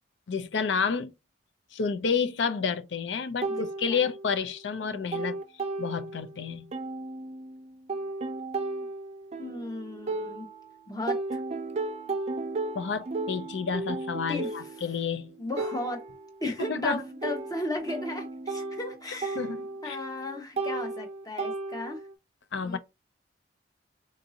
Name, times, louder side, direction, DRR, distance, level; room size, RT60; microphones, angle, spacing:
voice 1, 0.3-1.1 1.7-5.4 5.8-6.7 12.8-15.3 16.4-17.0 19.1-20.0 22.5-22.8, left 5 dB, 80° left, 0.5 m, -30 dB
sound 1, 3.4-4.5 4.8-6.4 6.7-10.7 11.1-22.1, right 3 dB, 35° right, 0.4 m, -35 dB
voice 2, 9.4-10.5 10.9-11.4 14.3-14.5 15.4-16.0 16.4-19.5 19.8-22.0 22.6-22.8, left 2 dB, 20° left, 0.9 m, -35 dB
4.0 x 2.6 x 2.7 m
head